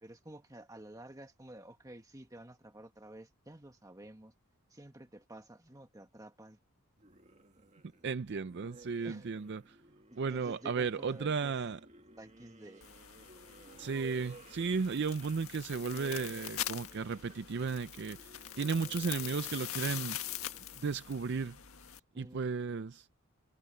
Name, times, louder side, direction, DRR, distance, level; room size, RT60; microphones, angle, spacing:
voice 1, 0.0-4.3 4.7-6.6 9.0-9.3 10.3-11.5 12.2-12.8 22.1-22.4, right 1 dB, 15° right, 1.5 m, -51 dB
sound 1, 7.0-21.9, right 2 dB, 30° right, 1.9 m, -57 dB
voice 2, 8.0-9.8 10.1-11.8 13.8-20.2 20.8-21.6 22.2-23.1, right 5 dB, 50° right, 0.4 m, -34 dB
sound 2, 12.8-22.0, left 12 dB, 70° left, 1.7 m, -43 dB
head